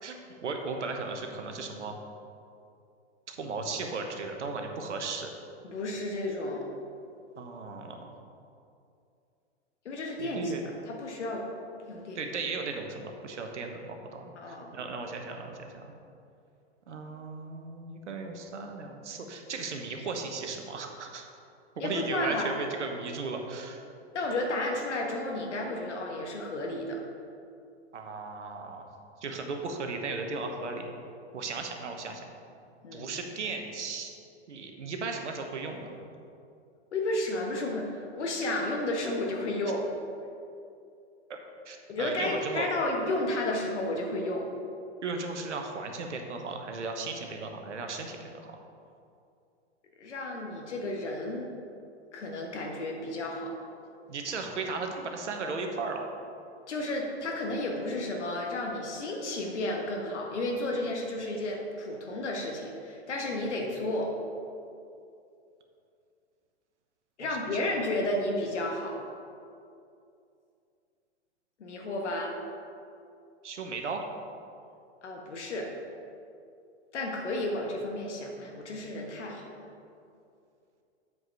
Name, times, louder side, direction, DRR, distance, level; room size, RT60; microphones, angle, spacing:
voice 1, 0.0-2.0 3.3-5.3 7.4-8.1 10.2-10.6 12.1-15.9 16.9-21.2 21.8-23.9 27.9-28.9 29.2-30.9 31.3-32.2 32.9-34.1 34.5-35.9 41.6-42.7 45.0-48.6 54.1-56.0 73.4-74.1, right 4 dB, 85° right, 4 dB, 1.2 m, -36 dB
voice 2, 5.6-6.6 9.8-10.5 10.9-11.4 11.9-12.2 14.4-14.7 21.8-22.5 24.1-27.0 32.8-33.1 36.9-39.8 41.9-44.5 50.0-51.5 52.1-53.5 56.7-64.1 67.2-69.0 71.6-72.3 75.0-75.7 76.9-79.6, left 1 dB, 80° left, 0 dB, 1.5 m, -32 dB
7.6 x 4.8 x 5.7 m, 2.5 s
hypercardioid pair, 115°, 34 cm